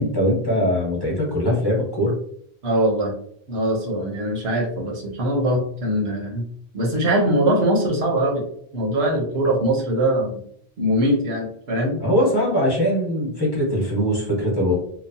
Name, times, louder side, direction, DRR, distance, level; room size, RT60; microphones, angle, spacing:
voice 1, 0.0-2.1 12.0-14.7, equal, 25° left, -4 dB, 1.0 m, -21 dB
voice 2, 2.6-3.1 3.5-6.4 6.7-8.4 8.7-10.4 10.8-12.0, right 1 dB, 80° right, 0 dB, 1.1 m, -22 dB
2.9 x 2.0 x 2.6 m, 0.64 s
omnidirectional pair, 1.0 m